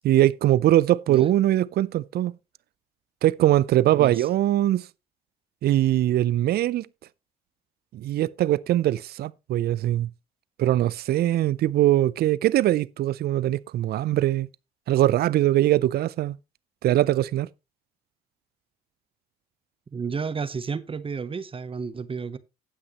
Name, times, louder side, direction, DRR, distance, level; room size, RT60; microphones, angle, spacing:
voice 1, 0.0-2.3 3.2-4.9 5.6-6.9 7.9-10.1 10.6-14.5 14.9-16.4 16.8-17.5, right 13 dB, 60° right, 0.5 m, -21 dB
voice 2, 3.9-4.3 19.9-22.4, right 5 dB, 30° right, 0.9 m, -32 dB
18.0 x 6.1 x 3.0 m
supercardioid pair, 65°, 18 cm